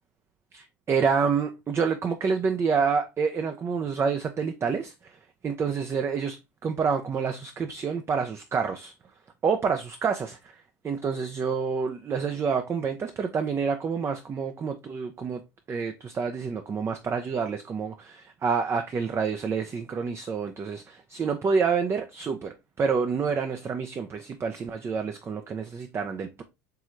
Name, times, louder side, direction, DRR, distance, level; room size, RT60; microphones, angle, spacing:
voice 1, 0.5-5.2 5.4-8.9 9.4-10.5 10.8-15.4 15.7-26.4, right 5 dB, 30° right, 0.5 m, -28 dB
4.7 x 3.1 x 2.5 m
hypercardioid pair, 75°, 9 cm